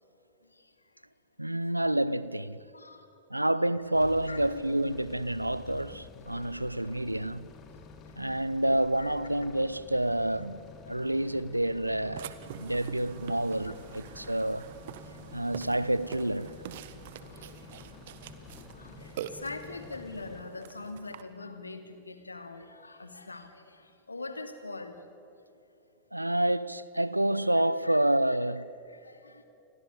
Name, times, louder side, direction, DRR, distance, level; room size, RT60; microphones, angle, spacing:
voice 1, 1.4-2.6 3.3-7.5 8.2-12.3 12.6-14.7 15.3-16.6 26.1-28.7, right 1 dB, 85° right, 0.8 m, -28 dB
voice 2, 2.7-3.1 4.3-4.4 8.0-8.3 8.9-9.1 12.6-12.8 13.6-13.7 15.1-15.2 17.2-17.7 18.6-25.0 27.9-28.0 28.9-29.4, left 3 dB, 80° left, 2.4 m, -43 dB
sound 1, 3.9-20.4, left 5 dB, 30° left, 2.6 m, -50 dB
Burping eructation, 12.2-21.2, right 10 dB, 55° right, 1.4 m, -45 dB
29.5 x 22.5 x 8.5 m
figure-of-eight pair, 90°, 0 cm